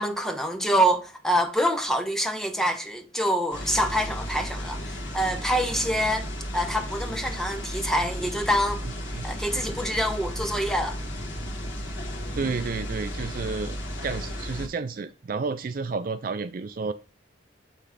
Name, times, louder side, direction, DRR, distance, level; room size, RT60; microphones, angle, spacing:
voice 1, 0.0-6.3 6.5-8.8 9.2-11.0, equal, 5° left, 0.9 m, -26 dB
sound 1, 3.5-14.7, equal, 80° left, 1.6 m, -34 dB
voice 2, 8.8-9.2 12.4-13.8 14.0-16.9, right 4 dB, 45° right, 0.4 m, -31 dB
8.9 x 3.1 x 4.9 m
head